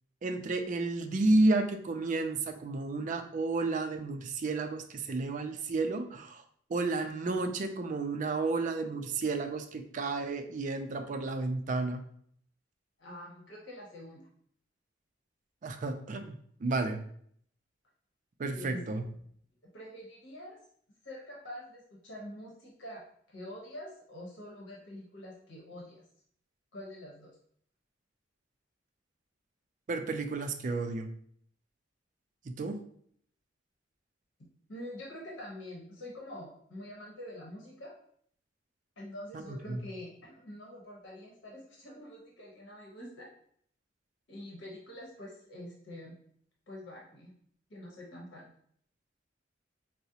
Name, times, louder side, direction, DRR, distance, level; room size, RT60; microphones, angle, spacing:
voice 1, 0.2-6.4 6.7-12.0 15.6-17.0 18.4-19.0 29.9-31.1 32.5-32.8 39.3-39.8, right 3 dB, 45° right, 6 dB, 0.4 m, -31 dB
voice 2, 13.0-14.3 18.5-18.8 19.6-20.6 21.0-23.0 23.3-26.0 26.7-27.3 34.7-37.9 39.0-43.3 44.3-46.1 46.7-47.3 47.7-48.5, left 1 dB, 85° left, -3 dB, 0.9 m, -46 dB
4.7 x 2.0 x 2.7 m, 0.64 s
head